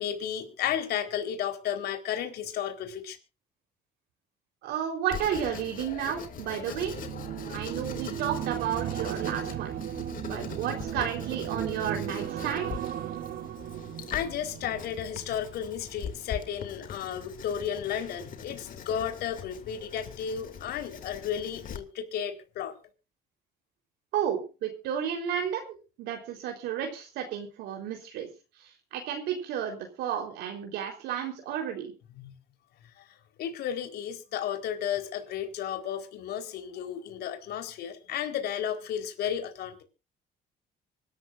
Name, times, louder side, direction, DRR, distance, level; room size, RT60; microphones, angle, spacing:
voice 1, 0.0-3.2 14.1-22.7 32.2-32.3 33.0-33.1 33.4-39.8, left 9 dB, 70° left, 5 dB, 4.4 m, -33 dB
voice 2, 4.6-6.9 7.5-9.8 10.2-12.7 24.1-28.3 28.6-31.9, right 9 dB, 85° right, 2 dB, 4.1 m, -32 dB
Writing, 5.1-21.8, left 7 dB, 55° left, 2.7 m, -42 dB
sound 1, 6.3-15.7 16.0-16.4, right 11 dB, 60° right, 1.0 m, -36 dB
25.0 x 13.5 x 2.6 m, 0.33 s
cardioid pair, 110°, 17 cm